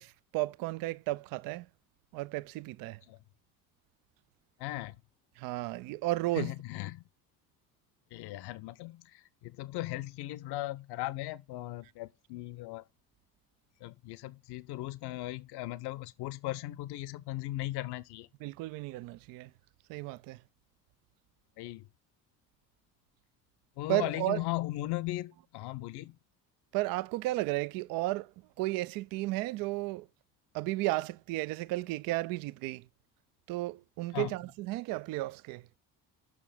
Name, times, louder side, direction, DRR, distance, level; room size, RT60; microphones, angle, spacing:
voice 1, 0.0-1.7 2.1-3.0 5.4-6.5 18.4-19.5 19.9-20.4 23.9-24.4 26.7-28.3 28.6-30.1 30.5-32.9 33.5-35.7, right 18 dB, 45° right, 0.5 m, -33 dB
voice 2, 4.6-5.0 6.4-7.0 8.1-12.8 13.8-18.3 21.6-21.9 23.8-26.1 34.1-34.3, left 17 dB, 55° left, 0.8 m, -37 dB
6.2 x 5.8 x 6.1 m
figure-of-eight pair, 45°, 49 cm